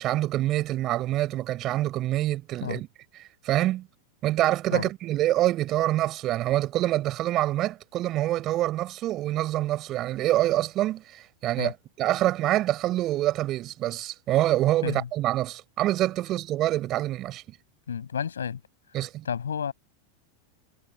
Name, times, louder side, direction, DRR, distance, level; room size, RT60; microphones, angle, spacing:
voice 1, 0.0-2.9 3.4-3.9 4.2-17.4 18.9-19.3, right 14 dB, 35° right, 5.8 m, -26 dB
voice 2, 17.9-18.6 19.2-19.7, left 7 dB, 70° left, 7.6 m, -31 dB
figure-of-eight pair, 90°, 0 cm